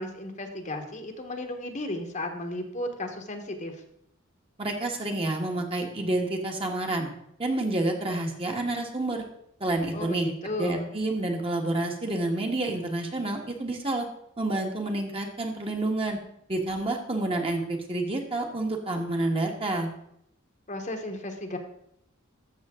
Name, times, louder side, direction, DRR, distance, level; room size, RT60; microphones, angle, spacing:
voice 1, 0.0-3.8 9.9-10.9 20.7-21.6, left 1 dB, 35° left, 4 dB, 1.2 m, -34 dB
voice 2, 4.6-7.1 7.4-9.2 9.6-10.3 10.6-14.1 14.4-16.2 16.5-19.9, right 2 dB, 30° right, 2 dB, 1.5 m, -29 dB
13.5 x 6.8 x 3.7 m, 0.73 s
head